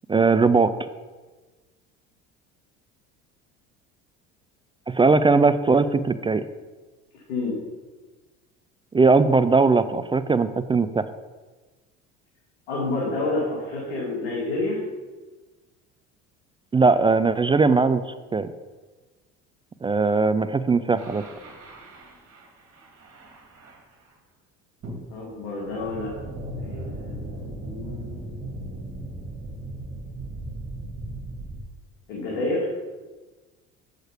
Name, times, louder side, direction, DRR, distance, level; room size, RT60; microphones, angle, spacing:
voice 1, 0.1-0.7 4.9-6.4 8.9-11.1 16.7-18.5 19.8-21.2, right 4 dB, 15° right, 12 dB, 0.3 m, -19 dB
voice 2, 7.1-7.5 12.7-14.8 25.1-26.1 26.6-29.2 32.1-32.7, left 2 dB, 85° left, -4 dB, 2.3 m, -30 dB
sound 1, 21.0-24.1 24.8-31.6, right 1 dB, 40° right, 2.3 m, -37 dB
7.8 x 6.5 x 5.0 m, 1.3 s
supercardioid pair, 85°, 35 cm